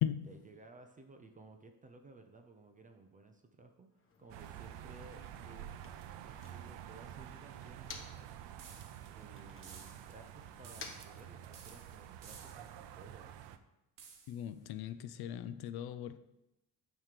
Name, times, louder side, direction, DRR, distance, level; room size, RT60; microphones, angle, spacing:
voice 1, 0.3-5.7 6.2-8.1 9.1-13.6, right 2 dB, 20° right, 0.4 m, -57 dB
Motor vehicle (road), 3.9-8.4 8.7-12.0, left 4 dB, 30° left, 0.8 m, -55 dB
sound 1, 4.3-13.6, right 11 dB, 75° right, 0.6 m, -49 dB
sound 2, 8.6-9.2 9.6-10.3 10.6-11.2 11.5-12.9 14.0-14.5, right 6 dB, 50° right, 1.0 m, -56 dB
voice 2, 14.3-16.2, left 11 dB, 60° left, 0.5 m, -37 dB
9.1 x 3.1 x 6.6 m
cardioid pair, 170°, 43 cm